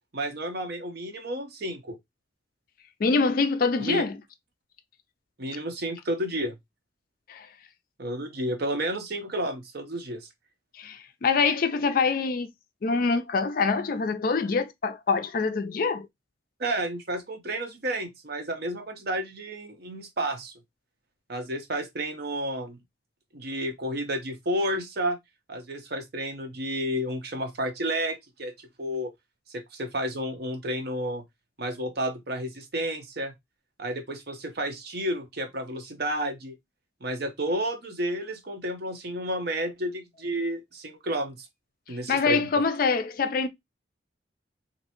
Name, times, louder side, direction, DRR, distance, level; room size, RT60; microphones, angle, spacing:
voice 1, 0.1-2.0 3.8-4.0 5.4-6.5 8.0-10.3 16.6-20.5 21.3-22.8 23.3-25.2 25.5-28.5 28.8-29.1 29.5-31.2 31.6-33.3 33.8-36.5 37.0-41.5 41.9-42.6, right 1 dB, 55° right, 0.8 m, -31 dB
voice 2, 3.0-4.1 7.3-7.5 10.8-12.5 12.8-16.1 41.9-43.5, left 4 dB, 50° left, 0.4 m, -25 dB
3.2 x 2.7 x 2.9 m
head